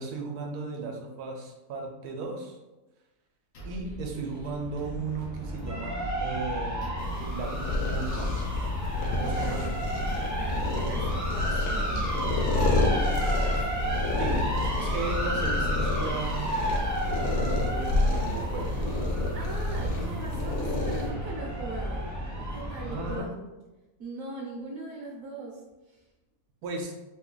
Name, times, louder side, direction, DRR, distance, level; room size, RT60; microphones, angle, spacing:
voice 1, 0.0-2.6 3.6-6.8 7.2-8.4 9.2-9.7 14.2-16.6 17.2-18.8 22.9-23.3 26.6-26.9, right 3 dB, 90° right, 2 dB, 1.2 m, -36 dB
sound 1, 3.5-16.6, left 2 dB, 50° left, 0.6 m, -43 dB
sound 2, 4.4-23.2, equal, 20° right, 0.6 m, -32 dB
sound 3, 7.0-21.1, left 2 dB, 80° left, 1.1 m, -29 dB
voice 2, 9.2-9.7 10.2-13.6 19.3-22.1 22.4-23.4 24.0-26.1, right 2 dB, 70° right, -3 dB, 1.0 m, -40 dB
3.0 x 2.3 x 3.7 m, 1.1 s
omnidirectional pair, 1.6 m